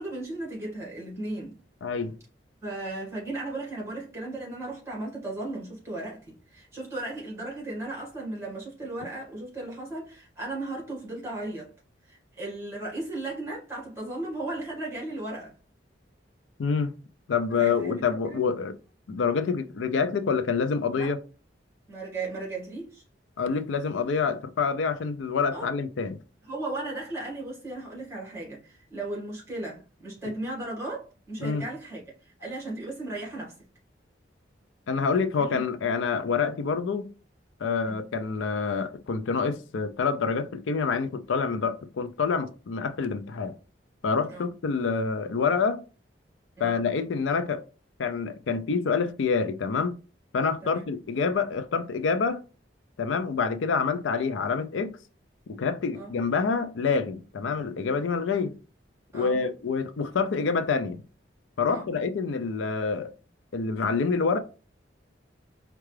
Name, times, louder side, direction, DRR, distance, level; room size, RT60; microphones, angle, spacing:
voice 1, 0.0-1.6 2.6-11.7 12.0-15.5 17.6-18.0 18.3-18.4 20.9-21.1 21.9-23.0 25.5-25.7 26.4-33.5 35.4-35.6 37.8-38.0 44.3-44.5 46.6-46.8 50.6-50.9 55.9-56.1 59.1-59.4 61.7-61.9, right 2 dB, 15° right, 1.6 m, -36 dB
voice 2, 1.8-2.2 16.6-16.9 17.3-18.7 19.1-21.2 23.4-26.2 31.4-31.6 34.9-37.1 37.6-43.5 44.0-45.8 46.6-47.6 48.0-50.0 50.3-52.4 53.0-54.9 55.5-58.5 59.1-61.0 61.6-63.1 63.5-64.4, left 5 dB, 80° left, 0.4 m, -27 dB
4.6 x 2.3 x 3.2 m
head